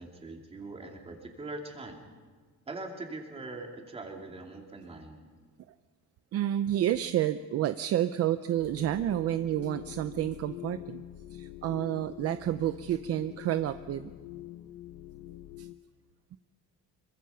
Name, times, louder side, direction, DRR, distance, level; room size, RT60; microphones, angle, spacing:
voice 1, 0.0-2.0 2.7-5.2, right 2 dB, 20° right, 2 dB, 2.8 m, -42 dB
voice 2, 6.3-11.0 11.3-14.1 15.6-15.7, right 12 dB, 50° right, 11 dB, 0.6 m, -30 dB
sound 1, 8.6-15.8, left 14 dB, 60° left, 1.0 m, -45 dB
26.0 x 24.0 x 5.8 m, 1.5 s
cardioid pair, 175°, 32 cm